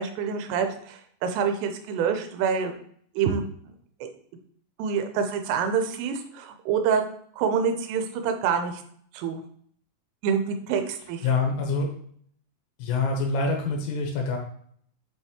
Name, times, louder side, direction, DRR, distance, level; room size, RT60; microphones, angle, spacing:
voice 1, 0.0-2.7 3.2-3.4 4.8-7.0 7.4-8.8 9.1-9.4 10.2-11.3, right 6 dB, 90° right, 6 dB, 3.2 m, -26 dB
voice 2, 11.2-11.9 12.8-14.4, left 4 dB, 90° left, 1 dB, 3.6 m, -25 dB
7.5 x 5.6 x 3.0 m, 0.62 s
omnidirectional pair, 5.7 m